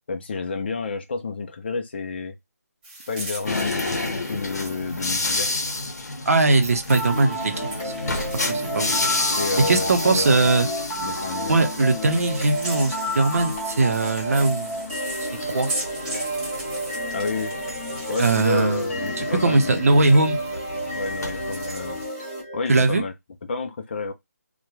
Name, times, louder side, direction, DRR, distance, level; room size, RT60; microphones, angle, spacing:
voice 1, 0.1-2.3 3.1-5.6 9.4-11.7 17.1-17.5 18.1-20.1 20.9-22.0 22.5-23.1 23.5-24.1, left 4 dB, 40° left, 0.4 m, -30 dB
sound 1, 2.8-6.1 6.5-10.6 11.8-19.6 19.9-22.1, right 2 dB, 25° right, 1.2 m, -39 dB
sound 2, 3.5-22.0, left 2 dB, 70° left, 0.7 m, -31 dB
voice 2, 6.3-7.9 8.4-9.1 9.7-10.7 11.5-14.8 15.4-15.7 18.2-18.8 19.2-20.4 22.7-23.0, right 3 dB, 60° right, 0.6 m, -20 dB
sound 3, 6.9-22.9, equal, 15° left, 1.0 m, -31 dB
2.9 x 2.2 x 2.2 m
figure-of-eight pair, 160°, 9 cm